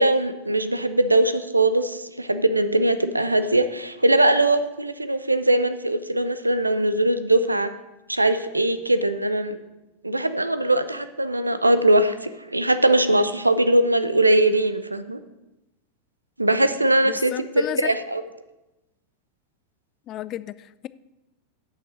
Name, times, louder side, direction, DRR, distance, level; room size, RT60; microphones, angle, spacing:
voice 1, 0.0-7.7 8.1-9.6 10.0-15.2 16.4-18.2, right 1 dB, 85° right, 11 dB, 0.5 m, -21 dB
voice 2, 17.1-17.9 20.1-20.9, left 13 dB, 35° left, 17 dB, 0.3 m, -33 dB
8.6 x 5.8 x 6.2 m, 0.98 s
figure-of-eight pair, 90°, 0 cm